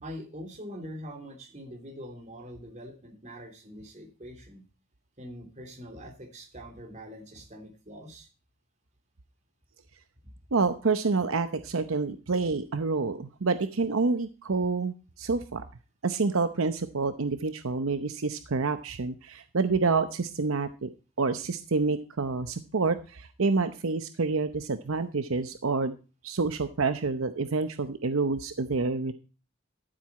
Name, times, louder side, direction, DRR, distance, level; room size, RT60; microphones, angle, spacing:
voice 1, 0.0-4.7 5.2-8.3, equal, 35° right, 3 dB, 3.1 m, -43 dB
voice 2, 10.5-15.6 16.0-20.9 21.2-25.9 26.2-29.1, right 4 dB, 75° right, 10 dB, 0.8 m, -28 dB
13.0 x 7.7 x 4.2 m, 0.34 s
head